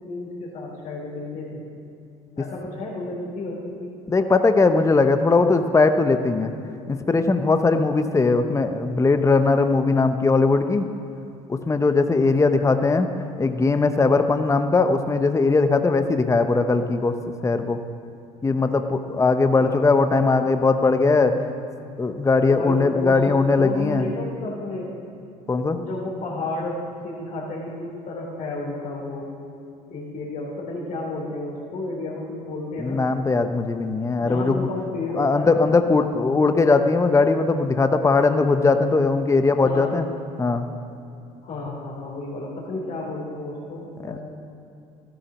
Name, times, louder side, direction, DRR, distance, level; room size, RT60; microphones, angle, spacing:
voice 1, 0.1-1.6 2.4-3.9 8.1-8.5 19.5-20.5 22.5-24.9 25.7-29.3 29.9-33.1 34.2-35.6 39.4-40.1 41.4-44.2, left 2 dB, 55° left, -5 dB, 3.2 m, -32 dB
voice 2, 4.1-6.5 6.9-10.8 11.5-13.1 13.4-17.1 17.4-17.8 18.4-21.3 22.0-24.0 25.5-25.8 32.8-34.6 35.2-40.1 40.4-40.6 44.1-44.2, left 3 dB, 20° left, 8 dB, 0.9 m, -19 dB
13.5 x 11.5 x 6.1 m, 2.7 s
supercardioid pair, 75°, 16 cm